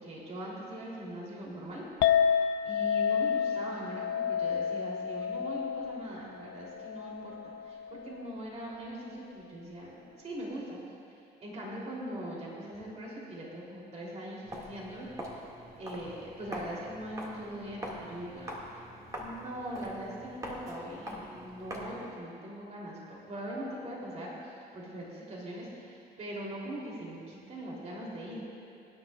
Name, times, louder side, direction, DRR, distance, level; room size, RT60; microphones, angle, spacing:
voice 1, 0.0-1.8 2.6-7.4 7.6-10.8 11.4-15.2 15.8-18.8 19.2-28.4, right 1 dB, 40° right, -4 dB, 3.3 m, -41 dB
Chink clink, 2.0-8.3, left 7 dB, 70° left, 0.6 m, -30 dB
Walk footsteps, 14.4-22.1, equal, 20° right, 2.1 m, -43 dB
23.5 x 10.5 x 2.4 m, 2.5 s
cardioid pair, 110°, 17 cm